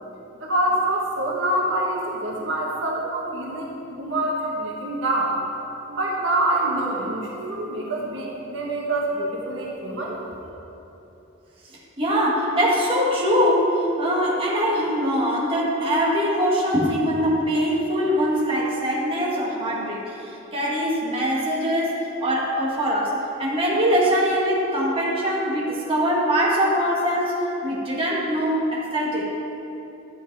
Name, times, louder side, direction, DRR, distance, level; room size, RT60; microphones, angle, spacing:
voice 1, 0.4-5.4 5.9-10.2, right 1 dB, 65° right, -3 dB, 1.5 m, -26 dB
voice 2, 12.0-20.0 20.5-21.9 22.2-27.3 27.6-29.2, equal, 25° right, -5 dB, 1.8 m, -22 dB
12.5 x 8.3 x 4.8 m, 3.0 s
head